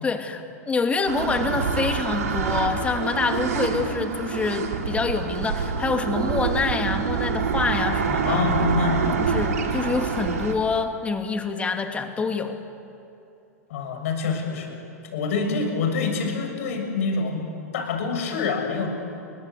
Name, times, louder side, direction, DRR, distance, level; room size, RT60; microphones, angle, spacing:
voice 1, 0.0-8.5 9.2-12.6, left 4 dB, 15° left, 6 dB, 2.6 m, -26 dB
sound 1, 1.1-10.5, right 5 dB, 65° right, 3.2 m, -26 dB
voice 2, 8.3-9.4 13.7-14.8 15.1-17.4 17.7-18.9, left 4 dB, 55° left, 4 dB, 7.1 m, -26 dB
30.0 x 23.5 x 8.4 m, 2.8 s
figure-of-eight pair, 100°, 9 cm